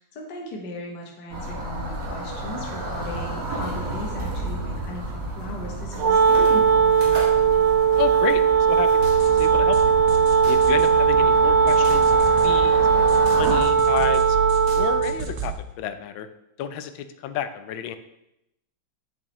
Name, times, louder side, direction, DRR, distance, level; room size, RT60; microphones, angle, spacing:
voice 1, 0.0-7.2, left 1 dB, 60° left, -1 dB, 1.8 m, -37 dB
sound 1, 1.3-13.6, right 1 dB, 45° right, 2.1 m, -32 dB
Wind instrument woodwind instrument, 6.0-15.2, right 6 dB, 70° right, 1.2 m, -18 dB
voice 2, 8.0-8.9 9.2-9.8 10.5-13.1 13.4-14.4 14.7-16.3 16.6-18.0, left 9 dB, 85° left, 10 dB, 1.4 m, -31 dB
sound 2, 9.0-15.5, right 6 dB, 85° right, 1.7 m, -32 dB
8.1 x 7.4 x 3.0 m, 0.85 s
omnidirectional pair, 2.1 m